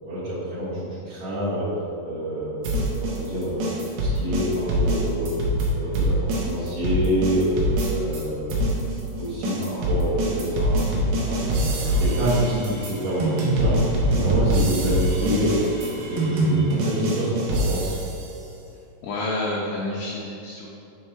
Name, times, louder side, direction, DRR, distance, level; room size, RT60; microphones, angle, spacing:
voice 1, 0.0-1.7 2.0-3.6 4.0-5.4 5.7-7.5 7.9-8.7 9.2-10.8 11.2-13.8 14.1-15.6 15.9-17.9, equal, 60° right, -13 dB, 1.7 m, -27 dB
sound 1, 2.6-8.2 8.5-18.2, right 1 dB, 75° right, 2.7 m, -24 dB
voice 2, 19.0-20.7, left 2 dB, 80° left, -5 dB, 2.3 m, -29 dB
6.8 x 3.5 x 4.4 m, 2.7 s
omnidirectional pair, 4.8 m